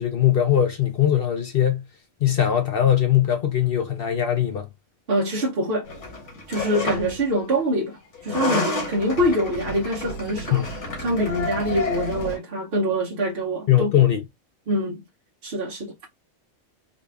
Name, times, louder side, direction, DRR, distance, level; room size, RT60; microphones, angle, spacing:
voice 1, 0.0-1.8 2.2-4.7 10.5-10.7 13.7-14.2, left 10 dB, 60° left, 0.8 m, -20 dB
voice 2, 5.1-5.9 6.5-10.6 11.0-13.9 14.7-15.0 15.4-15.9, equal, 55° right, 1.0 m, -24 dB
sound 1, 5.8-7.2 8.1-12.4, left 2 dB, 75° left, 1.9 m, -30 dB
4.0 x 2.3 x 3.3 m
omnidirectional pair, 1.2 m